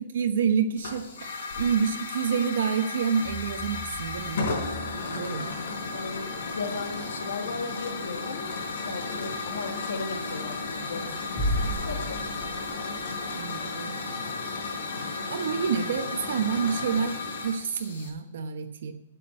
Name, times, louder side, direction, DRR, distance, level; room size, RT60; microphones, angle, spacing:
voice 1, 0.1-4.5 5.1-5.6 13.3-14.0 15.3-18.9, right 6 dB, 60° right, 7 dB, 1.0 m, -28 dB
Hiss / Fire, 0.8-18.1, left 3 dB, 65° left, 3.9 m, -34 dB
sound 1, 3.2-13.7, equal, ahead, 1.8 m, -38 dB
voice 2, 5.9-8.5 8.8-12.3, left 4 dB, 85° left, 6 dB, 1.6 m, -36 dB
8.7 x 8.4 x 8.3 m, 0.98 s
hypercardioid pair, 170°, 0 cm